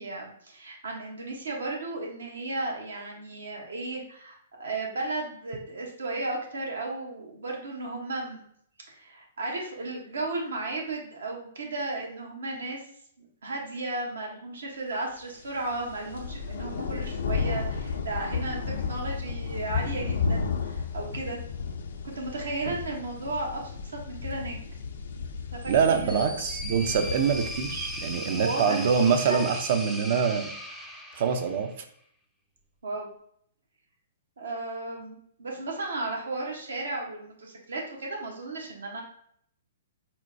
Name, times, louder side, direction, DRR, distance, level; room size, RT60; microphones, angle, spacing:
voice 1, 0.0-8.4 8.9-12.9 13.2-18.6 18.8-21.4 22.1-24.6 25.2-26.4 28.3-29.4 32.8-33.1 34.4-39.0, right 2 dB, 75° right, 0 dB, 0.9 m, -34 dB
sound 1, 15.5-28.2, left 5 dB, 70° left, 0.4 m, -33 dB
sound 2, 25.6-31.8, equal, ahead, 0.4 m, -38 dB
voice 2, 25.7-30.5 31.2-31.7, right 6 dB, 55° right, 7 dB, 0.5 m, -25 dB
4.3 x 2.1 x 2.6 m, 0.66 s
hypercardioid pair, 125°, 0 cm